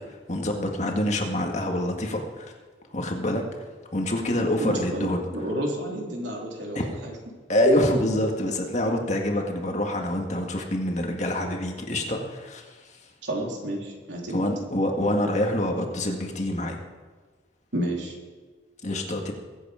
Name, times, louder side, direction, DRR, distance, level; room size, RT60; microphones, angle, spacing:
voice 1, 0.1-2.5 2.9-3.4 3.9-5.2 6.8-6.9 7.5-12.8 14.3-16.8 18.8-19.3, left 1 dB, 40° left, 2 dB, 1.8 m, -26 dB
voice 2, 4.3-6.8 13.2-14.4 17.7-18.1, right 1 dB, 80° right, -1 dB, 3.3 m, -31 dB
23.0 x 8.4 x 5.1 m, 1.4 s
head